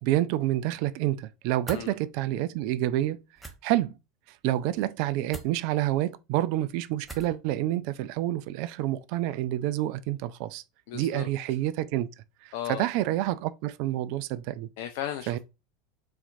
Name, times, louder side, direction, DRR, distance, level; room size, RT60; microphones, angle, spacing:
voice 1, 0.0-3.2 3.6-4.0 4.3-10.6 10.9-12.1 12.4-14.7 15.3-15.4, right 14 dB, 55° right, 0.3 m, -28 dB
sound 1, 1.6-1.9 3.3-3.5 5.3-5.5 7.0-7.4, right 2 dB, 5° right, 1.0 m, -40 dB
voice 2, 10.9-11.3 12.5-12.9 14.8-15.4, left 11 dB, 60° left, 0.4 m, -35 dB
4.2 x 4.0 x 2.6 m
figure-of-eight pair, 80°, 0 cm